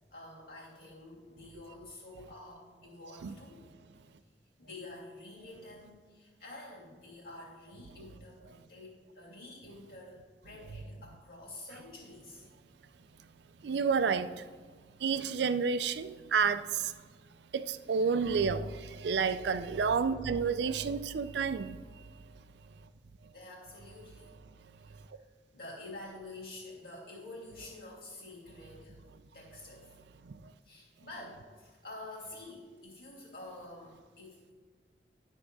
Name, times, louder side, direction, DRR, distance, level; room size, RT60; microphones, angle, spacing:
voice 1, 0.1-3.7 4.6-12.5 20.6-20.8 23.3-24.3 24.8-25.3 25.5-29.0 29.3-29.9 30.6-34.5, left 2 dB, 55° left, 2.6 m, -49 dB
voice 2, 13.6-14.3 15.0-16.9 17.5-21.8, right 5 dB, 75° right, 0.4 m, -30 dB
11.0 x 3.7 x 6.0 m
head